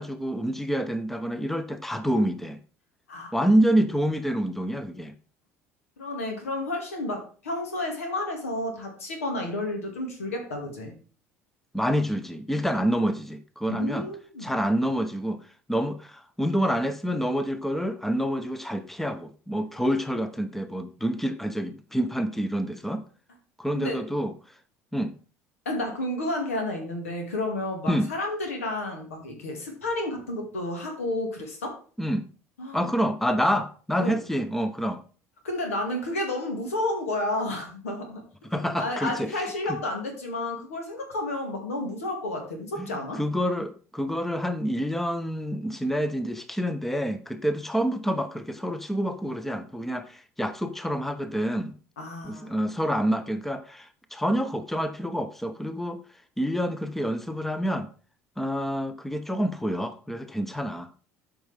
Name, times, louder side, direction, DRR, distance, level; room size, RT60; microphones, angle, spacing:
voice 1, 0.0-2.6 3.3-5.1 11.7-14.1 14.4-15.4 15.7-23.0 23.6-24.3 24.9-25.1 27.9-28.1 32.0-32.2 32.7-35.0 38.5-39.8 42.8-51.7 52.2-56.0 56.4-57.9 58.4-61.1, equal, 5° left, 0.8 m, -27 dB
voice 2, 6.0-10.9 13.8-14.5 23.7-24.0 25.7-31.8 32.6-32.9 34.0-34.2 35.4-38.2 38.7-43.2 52.0-52.5, left 1 dB, 75° left, 2.4 m, -31 dB
12.5 x 5.2 x 3.6 m
figure-of-eight pair, 60°, 8 cm